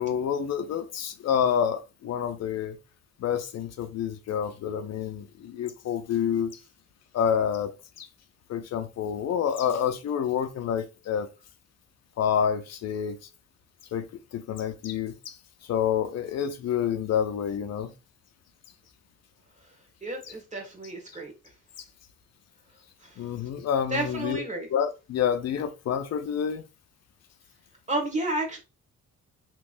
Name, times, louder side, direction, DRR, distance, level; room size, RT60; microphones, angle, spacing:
voice 1, 0.0-2.8 3.2-6.5 7.1-8.1 8.5-11.3 12.2-13.2 13.9-15.4 15.6-17.9 23.2-26.6, left 8 dB, 60° left, 0.5 m, -28 dB
voice 2, 20.0-21.3 23.0-23.1 23.9-24.7 27.9-28.6, right 2 dB, 25° right, 1.4 m, -31 dB
3.4 x 3.0 x 2.5 m
cardioid pair, 90°, 30 cm